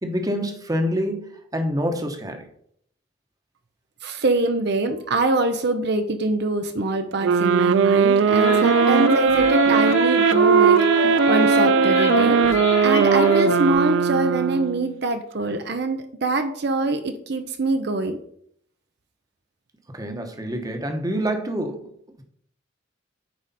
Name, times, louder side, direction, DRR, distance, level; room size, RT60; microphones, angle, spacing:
voice 1, 0.0-2.5 19.9-21.9, equal, 20° right, 5 dB, 1.1 m, -26 dB
voice 2, 4.0-12.4 12.8-18.2, right 2 dB, 65° right, 7 dB, 0.7 m, -24 dB
sound 1, 7.2-14.9, right 6 dB, 85° right, 0.3 m, -18 dB
sound 2, 8.3-13.7, left 3 dB, 65° left, 1.6 m, -25 dB
9.2 x 4.8 x 4.2 m, 0.66 s
head